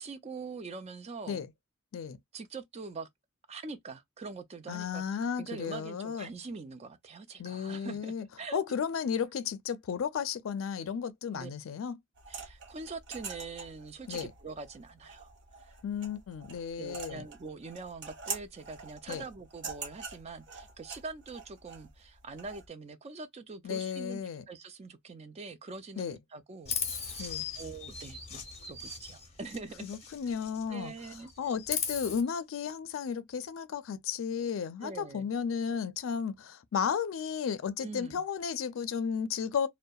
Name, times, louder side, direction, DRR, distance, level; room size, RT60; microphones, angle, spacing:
voice 1, 0.0-1.4 2.3-3.1 3.5-5.0 5.4-8.6 11.3-11.5 12.3-15.3 15.6-15.7 16.8-24.2 24.5-27.2 27.6-29.9 30.7-31.3 34.8-35.3 37.8-38.2, right 4 dB, 35° right, 0.4 m, -43 dB
voice 2, 4.7-6.3 7.4-8.3 8.5-12.0 14.1-14.3 15.8-17.3 19.1-19.2 23.6-24.4 26.0-26.2 27.2-27.4 29.8-30.9 31.4-39.7, left 7 dB, 85° left, 0.4 m, -34 dB
sound 1, 12.2-22.7, right 4 dB, 60° right, 0.7 m, -45 dB
Chirp tweet, 26.7-30.7 31.0-32.2, left 6 dB, 35° left, 0.7 m, -38 dB
2.6 x 2.1 x 2.2 m
head